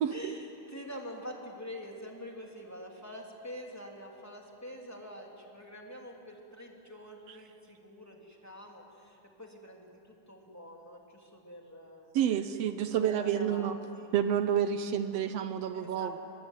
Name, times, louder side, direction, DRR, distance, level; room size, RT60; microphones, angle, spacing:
voice 1, 0.1-12.1 12.9-14.1 15.7-16.1, equal, 5° left, 0 dB, 2.5 m, -46 dB
voice 2, 12.1-13.8 14.1-16.2, right 9 dB, 70° right, 10 dB, 1.5 m, -29 dB
25.0 x 21.0 x 9.2 m, 3.0 s
omnidirectional pair, 3.7 m